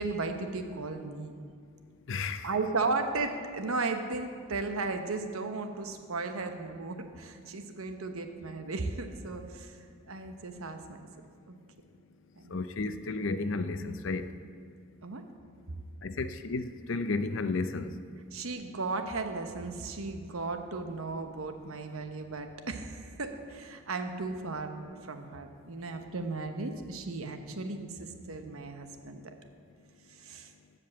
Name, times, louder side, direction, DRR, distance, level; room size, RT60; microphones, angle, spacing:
voice 1, 0.0-1.3 2.4-9.8 10.1-11.1 11.5-11.6 12.4-12.6 15.0-15.2 18.3-29.3 30.2-30.5, right 3 dB, 85° right, 7 dB, 1.0 m, -35 dB
voice 2, 2.1-2.5 12.5-14.4 16.0-18.0, left 3 dB, 65° left, 11 dB, 0.6 m, -33 dB
14.5 x 5.3 x 7.6 m, 2.2 s
head